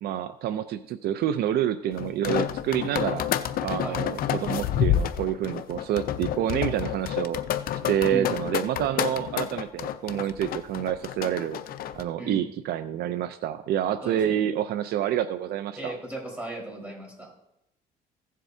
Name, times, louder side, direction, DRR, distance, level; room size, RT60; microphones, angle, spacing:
voice 1, 0.0-3.3 3.6-7.4 7.9-11.6 12.0-15.9, right 10 dB, 70° right, 12 dB, 0.5 m, -28 dB
sound 1, 2.0-12.0, left 10 dB, 60° left, 0.6 m, -29 dB
voice 2, 12.2-12.5 14.0-14.4 15.8-17.3, right 2 dB, 10° right, -3 dB, 4.4 m, -36 dB
15.5 x 7.4 x 2.7 m, 0.83 s
cardioid pair, 110°, 17 cm